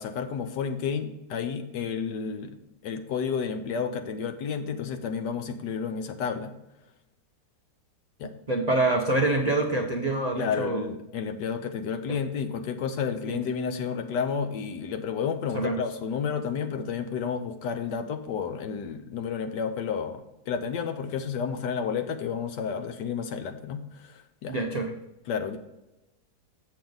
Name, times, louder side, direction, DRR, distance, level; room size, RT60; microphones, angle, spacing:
voice 1, 0.0-2.6 2.8-6.5 8.2-8.3 10.4-24.6 25.3-25.6, left 6 dB, 75° left, 8 dB, 1.4 m, -31 dB
voice 2, 8.5-10.8 12.1-12.2 13.3-13.4 15.5-15.8 24.5-24.9, right 2 dB, 90° right, 1 dB, 0.3 m, -26 dB
7.5 x 6.8 x 3.9 m, 0.94 s
omnidirectional pair, 1.9 m